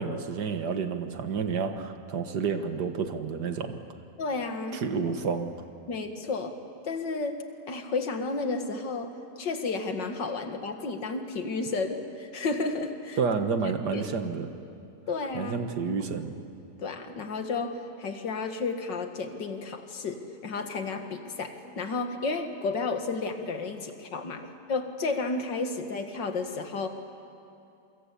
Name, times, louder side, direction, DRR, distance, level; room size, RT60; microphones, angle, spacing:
voice 1, 0.0-3.8 4.7-5.5 13.2-14.5 15.3-16.4, right 5 dB, 65° right, 7 dB, 2.0 m, -30 dB
voice 2, 4.2-4.8 5.9-6.6 6.8-13.2 13.6-14.1 15.1-15.6 16.8-24.4 24.7-26.9, left 3 dB, 75° left, 6 dB, 2.4 m, -32 dB
28.5 x 24.0 x 8.5 m, 2.6 s
omnidirectional pair, 1.9 m